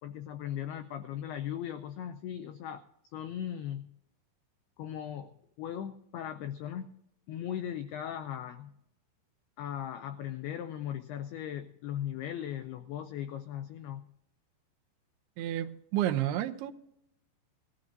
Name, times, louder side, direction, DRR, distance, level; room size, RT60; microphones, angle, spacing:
voice 1, 0.0-2.8 3.1-3.9 4.8-6.9 7.3-8.7 9.6-14.1, left 10 dB, 85° left, 2.2 m, -38 dB
voice 2, 15.4-16.7, right 12 dB, 85° right, 2.3 m, -30 dB
20.0 x 14.5 x 2.6 m
omnidirectional pair, 5.2 m